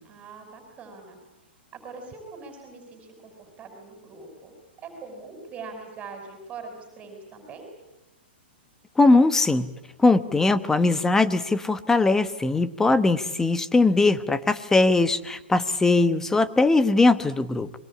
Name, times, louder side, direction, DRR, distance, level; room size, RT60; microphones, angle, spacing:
voice 1, 0.0-1.2 1.7-4.5 4.8-7.7, right 4 dB, 20° right, 5 dB, 5.7 m, -42 dB
voice 2, 9.0-9.7 10.0-17.7, left 3 dB, 10° left, 13 dB, 1.1 m, -20 dB
28.0 x 22.5 x 8.6 m, 0.93 s
hypercardioid pair, 135°, 6 cm